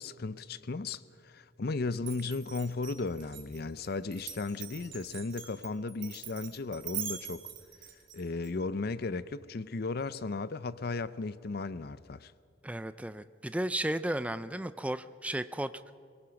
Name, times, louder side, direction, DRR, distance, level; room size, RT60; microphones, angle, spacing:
voice 1, 0.0-7.5 8.1-12.3, left 3 dB, 50° left, 0.5 m, -35 dB
Glass, 2.0-8.5, right 10 dB, 70° right, 3.4 m, -43 dB
voice 2, 12.6-15.9, right 1 dB, 5° right, 0.4 m, -34 dB
22.5 x 20.5 x 5.9 m
head